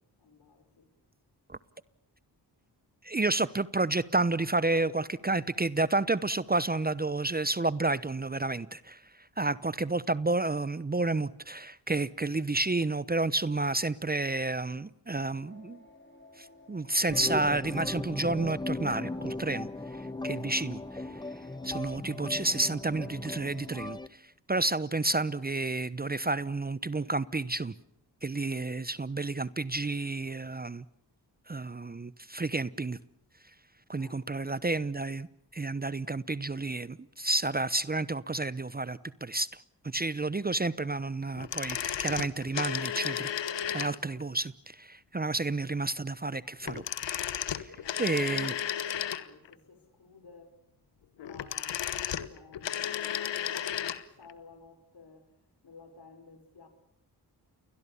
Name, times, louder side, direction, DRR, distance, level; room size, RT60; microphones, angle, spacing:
voice 1, 0.2-0.9 34.0-34.6 47.6-50.6 51.2-56.7, left 4 dB, 65° left, 5.4 m, -55 dB
voice 2, 3.0-9.0 9.4-15.8 16.4-19.7 20.0-21.1 21.6-27.7 28.2-30.8 31.5-33.0 33.9-35.3 35.5-39.5 39.8-46.8 47.4-47.7 48.0-48.5, right 2 dB, 20° right, 0.9 m, -30 dB
sound 1, 15.4-23.7, left 3 dB, 25° left, 4.9 m, -54 dB
sound 2, 17.1-24.1, left 2 dB, 10° left, 0.9 m, -37 dB
sound 3, 41.4-44.2 46.6-49.5 51.2-54.0 54.3-54.4, left 10 dB, 80° left, 1.3 m, -33 dB
29.5 x 21.5 x 7.1 m
supercardioid pair, 45°, 43 cm